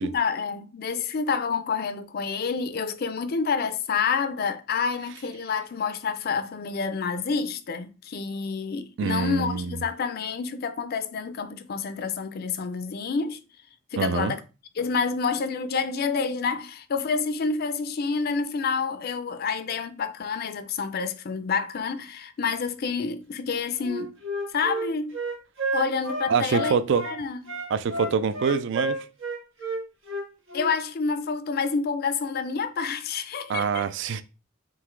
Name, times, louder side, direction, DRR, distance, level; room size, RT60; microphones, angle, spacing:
voice 1, 0.0-13.4 13.9-14.4 14.8-24.1 24.5-25.2 25.7-26.8 27.0-27.5 30.5-33.9, left 5 dB, 50° left, 0.4 m, -28 dB
voice 2, 9.0-9.8 14.0-14.3 26.3-27.0 27.7-29.1 33.5-34.2, right 6 dB, 60° right, 0.4 m, -25 dB
Wind instrument woodwind instrument, 23.8-27.2 27.5-30.7, right 2 dB, 85° right, 1.5 m, -30 dB
3.8 x 2.8 x 4.4 m
head